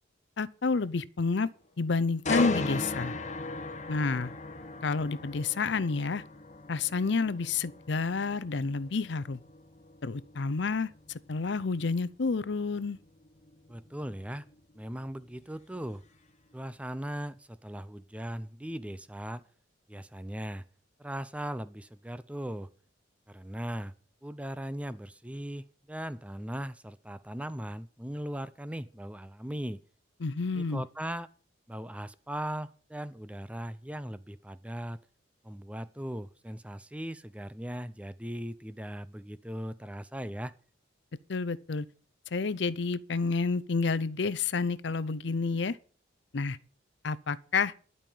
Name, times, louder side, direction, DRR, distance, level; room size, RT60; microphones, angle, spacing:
voice 1, 0.4-1.5 1.8-3.1 3.9-4.3 4.8-6.2 6.7-9.4 10.0-10.9 11.3-13.0 30.2-30.8 41.3-41.9 42.3-45.8 46.3-46.6 47.0-47.7, left 4 dB, 65° left, 0.6 m, -29 dB
sound 1, 2.2-16.1 16.5-16.8, left 2 dB, 35° left, 1.4 m, -38 dB
voice 2, 13.7-14.5 14.8-16.0 16.5-19.5 19.9-20.6 21.0-22.7 23.3-23.9 24.2-29.8 30.5-31.3 31.7-35.0 35.4-40.5, equal, 5° right, 0.4 m, -38 dB
12.0 x 5.5 x 8.4 m
head